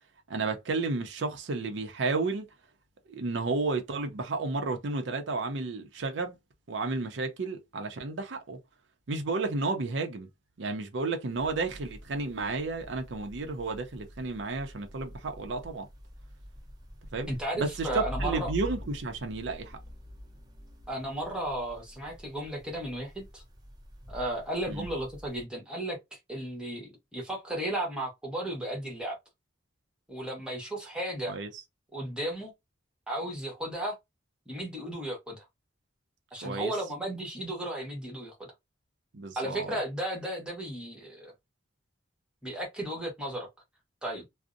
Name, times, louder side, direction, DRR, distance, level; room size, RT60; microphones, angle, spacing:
voice 1, 0.3-2.5 3.1-6.4 6.7-8.6 9.1-10.3 10.6-15.9 17.1-17.3 17.6-19.8 24.7-24.9 31.3-31.5 36.4-36.7 39.1-39.7, right 3 dB, 70° right, 0.5 m, -32 dB
sound 1, 11.3-25.4, equal, 20° right, 0.5 m, -45 dB
voice 2, 17.3-18.5 20.9-23.4 24.1-29.2 30.1-31.3 31.9-32.5 33.1-34.0 34.5-35.4 36.3-38.5 39.4-41.3 42.4-43.5 44.0-44.2, right 1 dB, 5° right, 1.0 m, -34 dB
2.6 x 2.0 x 2.4 m
head